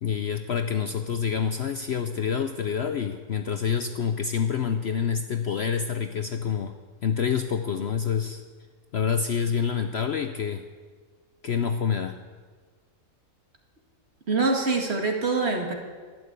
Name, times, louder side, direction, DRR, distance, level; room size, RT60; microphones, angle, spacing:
voice 1, 0.0-6.7 7.0-8.4 8.9-10.6 11.4-12.2, left 7 dB, 55° left, 7 dB, 0.8 m, -27 dB
voice 2, 14.3-15.7, right 3 dB, 45° right, 2 dB, 2.1 m, -24 dB
12.0 x 11.5 x 8.1 m, 1.5 s
omnidirectional pair, 1.6 m